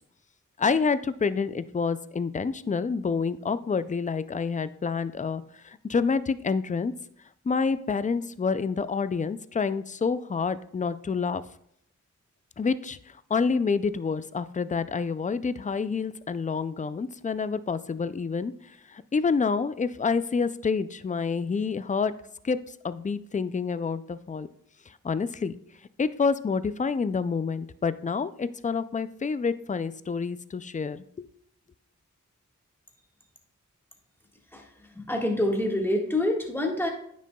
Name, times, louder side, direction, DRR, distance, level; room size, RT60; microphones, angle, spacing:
voice 1, 0.6-6.9 7.5-11.4 12.6-18.5 18.9-22.1 22.4-22.6 22.8-24.5 25.0-25.5 26.0-31.3, left 5 dB, 25° left, 14 dB, 0.3 m, -28 dB
voice 2, 34.9-36.9, left 1 dB, 5° left, 0 dB, 1.6 m, -26 dB
9.1 x 6.3 x 2.3 m, 0.70 s
wide cardioid pair, 45°, 31 cm